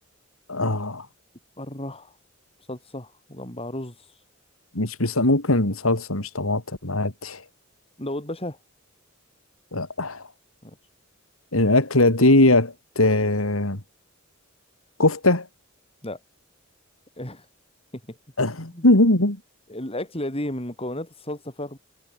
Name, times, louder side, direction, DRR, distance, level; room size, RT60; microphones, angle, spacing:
voice 1, 0.5-1.0 4.8-7.4 9.7-10.2 11.5-13.8 15.0-15.5 18.4-19.4, left 2 dB, 85° left, 3.7 m, -20 dB
voice 2, 1.6-2.2 2.7-4.1 8.0-8.6 10.6-10.8 16.0-16.2 17.2-17.5 17.9-18.2 18.7-18.9 19.7-21.8, left 1 dB, 30° left, 7.1 m, -33 dB
head